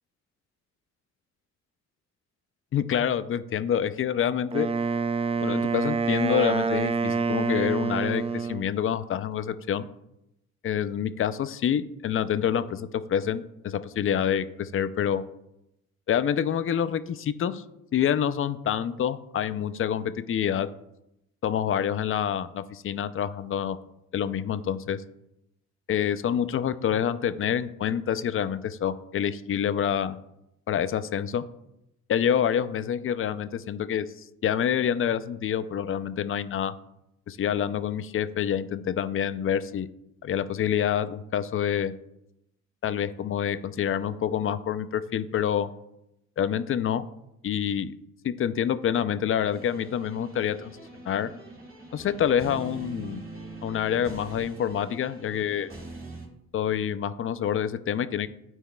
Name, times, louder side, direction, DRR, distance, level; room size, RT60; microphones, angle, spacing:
voice 1, 2.7-4.7 5.4-9.9 10.6-15.2 16.1-17.6 17.9-20.7 21.4-23.8 24.1-25.0 25.9-30.2 30.7-31.4 32.1-34.1 34.4-36.7 37.3-39.9 40.2-41.9 42.8-45.7 46.4-47.1 47.4-47.9 48.2-50.7 51.0-51.3 51.9-53.2 53.6-55.7 56.5-58.3, left 9 dB, 45° left, 13 dB, 0.5 m, -27 dB
Wind instrument woodwind instrument, 4.5-8.7, right 4 dB, 20° right, 0.4 m, -27 dB
sound 1, 49.5-56.3, right 2 dB, 45° right, 2.2 m, -43 dB
13.0 x 4.6 x 2.3 m, 0.85 s
cardioid pair, 90°, 30 cm